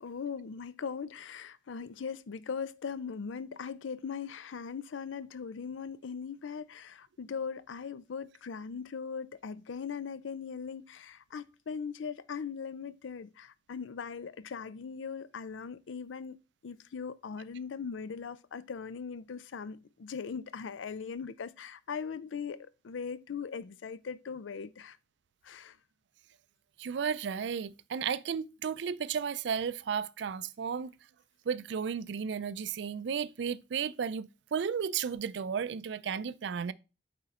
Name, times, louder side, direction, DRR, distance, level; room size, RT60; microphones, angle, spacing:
voice 1, 0.0-16.4 16.6-25.0 25.4-25.8, left 6 dB, 85° left, 0.5 m, -40 dB
voice 2, 26.8-30.9 31.5-36.7, right 7 dB, 65° right, 0.4 m, -34 dB
8.8 x 3.9 x 4.2 m
head